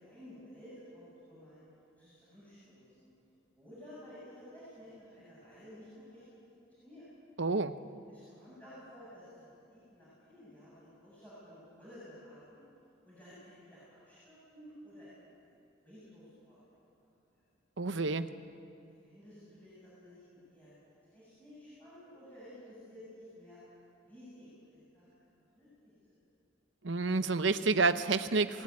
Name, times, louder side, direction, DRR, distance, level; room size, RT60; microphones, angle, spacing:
voice 1, 0.0-1.6 2.0-3.1 3.5-6.2 6.5-7.1 8.1-12.6 13.0-15.3 15.8-16.6 17.3-17.4 19.0-23.6 24.1-25.1 25.6-25.9, equal, 10° left, -11 dB, 7.5 m, -53 dB
voice 2, 7.4-7.7 17.8-18.3 26.8-28.6, right 3 dB, 65° right, 11 dB, 0.9 m, -29 dB
23.0 x 18.0 x 9.7 m, 2.6 s
head